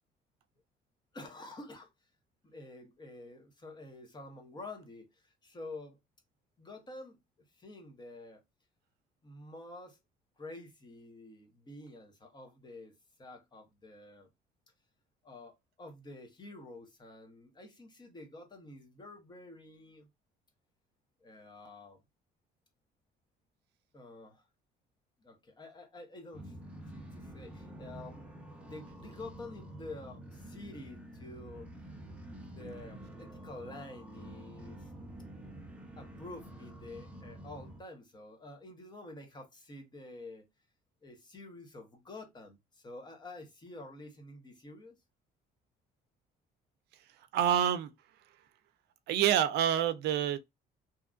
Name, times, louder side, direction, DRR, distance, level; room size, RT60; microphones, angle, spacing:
voice 1, 1.1-1.9 2.4-6.0 6.6-7.2 7.5-8.4 9.2-10.0 10.4-14.3 15.2-20.1 21.2-22.0 23.9-24.4 25.2-26.6 26.9-28.3 28.6-31.7 32.5-34.9 36.0-40.5 41.0-44.9, left 2 dB, 25° left, 1.0 m, -49 dB
sound 1, 26.3-37.8, right 1 dB, 5° right, 0.7 m, -48 dB
voice 2, 47.3-47.9 49.1-50.4, right 10 dB, 80° right, 0.5 m, -27 dB
2.8 x 2.4 x 2.4 m
cardioid pair, 110°, 17 cm